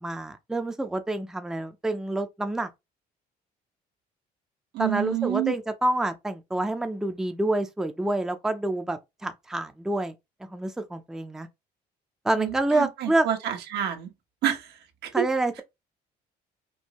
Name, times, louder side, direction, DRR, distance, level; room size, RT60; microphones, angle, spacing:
voice 1, 0.0-2.7 4.8-10.1 10.5-11.5 12.2-13.3 15.1-15.6, right 2 dB, 5° right, 0.5 m, -27 dB
voice 2, 4.7-5.6 12.3-14.1 14.4-15.2, right 11 dB, 80° right, 1.1 m, -28 dB
4.5 x 2.7 x 2.9 m
cardioid pair, 110°, 17 cm